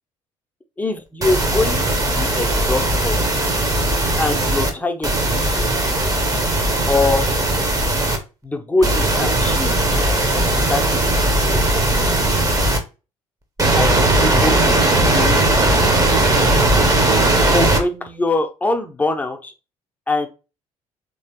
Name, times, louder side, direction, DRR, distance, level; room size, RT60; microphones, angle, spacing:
voice 1, 0.8-3.2 4.2-5.8 6.9-7.3 8.4-9.8 10.7-11.0 11.5-11.9 13.7-15.5 17.2-19.5 20.1-20.3, left 2 dB, 10° left, 5 dB, 0.7 m, -23 dB
sound 1, 1.2-4.7 5.0-8.2 8.8-12.8 13.6-17.8, right 2 dB, 20° right, 0.9 m, -18 dB
3.3 x 3.0 x 2.9 m, 0.30 s
figure-of-eight pair, 50°, 18 cm